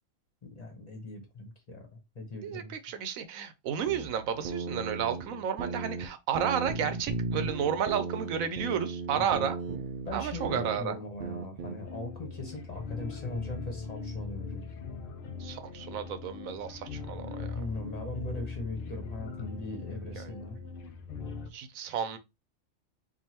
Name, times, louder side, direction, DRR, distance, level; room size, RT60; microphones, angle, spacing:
voice 1, 0.4-2.7 9.2-9.5 10.1-14.6 17.5-20.6, left 1 dB, 30° left, 1.0 m, -40 dB
voice 2, 2.4-9.6 10.1-10.9 15.4-17.6 20.2-20.3 21.5-22.2, right 8 dB, 90° right, 1.1 m, -32 dB
sound 1, 3.8-6.1 6.3-10.8 11.2-11.8, right 4 dB, 55° right, 0.5 m, -36 dB
sound 2, 11.8-21.5, left 4 dB, 60° left, 0.6 m, -40 dB
4.8 x 2.6 x 2.8 m
omnidirectional pair, 1.4 m